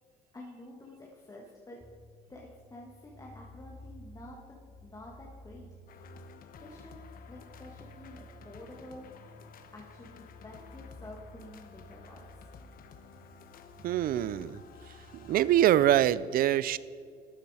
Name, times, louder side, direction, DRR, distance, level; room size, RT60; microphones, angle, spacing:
voice 1, 0.3-1.8 2.3-2.4 2.7-5.8 6.6-7.0 7.3-9.5 9.7-12.5, left 1 dB, 20° left, -3 dB, 1.6 m, -49 dB
sound 1, 1.8-16.1, equal, 5° left, 1.1 m, -53 dB
sound 2, 5.9-15.6, left 7 dB, 60° left, 0.9 m, -54 dB
voice 2, 13.8-14.6 15.1-16.8, right 12 dB, 60° right, 18 dB, 0.5 m, -24 dB
13.0 x 8.9 x 4.8 m, 2.1 s
cardioid pair, 110°, 17 cm